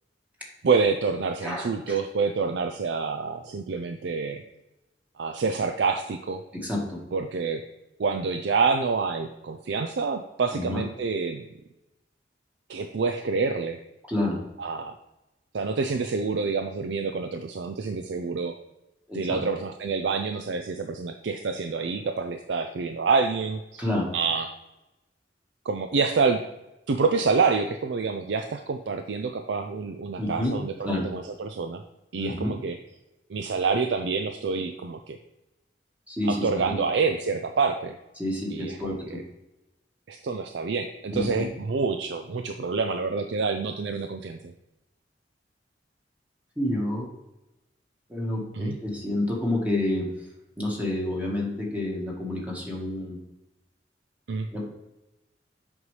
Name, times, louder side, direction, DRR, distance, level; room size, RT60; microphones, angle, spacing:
voice 1, 0.6-4.4 5.2-6.4 7.1-7.6 8.0-11.5 12.7-13.8 14.6-14.9 15.5-18.5 19.1-23.8 24.1-24.5 25.7-26.4 26.9-31.8 32.1-32.8 33.3-35.2 36.3-38.0 38.5-39.2 40.1-44.5 48.5-48.8 54.3-54.5, right 4 dB, 75° right, 7 dB, 0.4 m, -27 dB
voice 2, 1.4-2.0 6.5-7.0 10.5-10.8 14.1-14.4 19.1-19.4 23.8-24.1 30.2-30.6 30.8-31.1 32.2-32.5 36.1-36.8 38.2-39.2 41.1-41.5 46.6-47.1 48.1-50.1 50.6-53.2 54.5-54.6, left 1 dB, 10° right, -2 dB, 1.4 m, -29 dB
8.0 x 5.3 x 3.2 m, 0.96 s
head